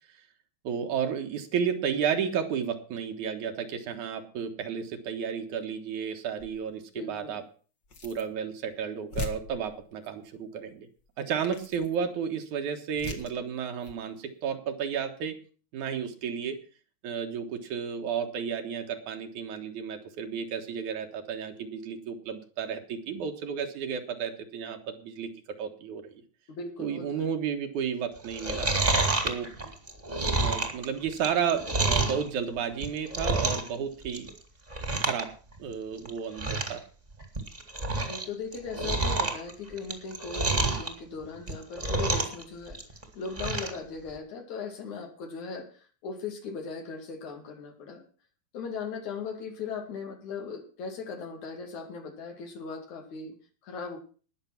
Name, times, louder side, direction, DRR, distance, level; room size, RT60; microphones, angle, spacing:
voice 1, 0.6-7.4 8.0-10.9 11.2-15.4 15.7-16.6 17.0-25.3 25.6-26.1 26.8-28.7 29.2-29.5 30.4-34.3 35.0-35.3 35.6-36.8, right 7 dB, 80° right, 6 dB, 2.9 m, -32 dB
sound 1, 6.4-6.7 7.8-8.4 8.7-8.8 9.1-10.1 11.0-11.1 11.4-12.0 12.9-13.4 13.8-14.0, left 3 dB, 40° left, 2.1 m, -40 dB
voice 2, 7.0-7.4 26.5-27.3 38.0-42.8 43.1-48.0 48.5-53.3 53.6-54.0, left 5 dB, 75° left, 4 dB, 3.7 m, -38 dB
Chewing mastication, 28.2-32.2 32.7-33.7 34.0-34.4 34.7-35.2 35.5-35.6 36.0-36.1 36.3-36.8 37.2-38.2 38.5-40.9 41.4-42.4 42.7-43.8 44.1-44.2, right 2 dB, 15° right, 1.8 m, -28 dB
19.5 x 6.8 x 5.9 m, 0.40 s
omnidirectional pair, 3.4 m